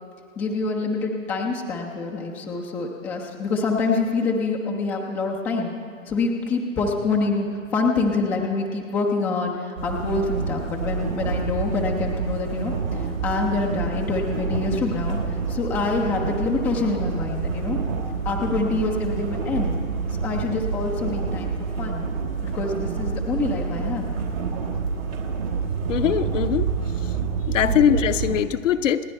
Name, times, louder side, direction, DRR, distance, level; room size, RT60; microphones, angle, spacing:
voice 1, 0.4-5.7 6.1-17.8 18.3-19.7 20.1-22.0 22.4-24.1 27.6-27.8, left 3 dB, 5° left, -1 dB, 0.3 m, -26 dB
sound 1, 9.8-28.4, right 5 dB, 85° right, 3.3 m, -28 dB
voice 2, 25.9-26.6 27.5-29.0, left 9 dB, 65° left, 10 dB, 0.8 m, -21 dB
27.5 x 9.5 x 4.3 m, 2.3 s
hypercardioid pair, 130°, 40 cm